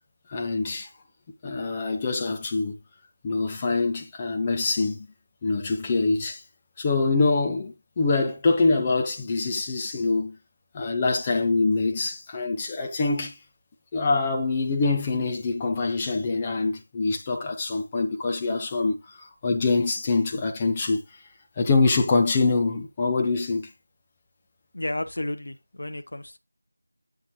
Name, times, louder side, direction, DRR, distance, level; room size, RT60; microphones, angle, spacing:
voice 1, 0.3-0.9 1.4-2.7 3.2-5.1 5.4-6.4 6.8-10.4 10.7-13.4 13.9-21.0 21.6-23.7, left 3 dB, 15° left, 0.8 m, -24 dB
voice 2, 24.7-26.4, left 1 dB, 50° left, 1.1 m, -32 dB
8.3 x 6.9 x 3.1 m
figure-of-eight pair, 170°, 0 cm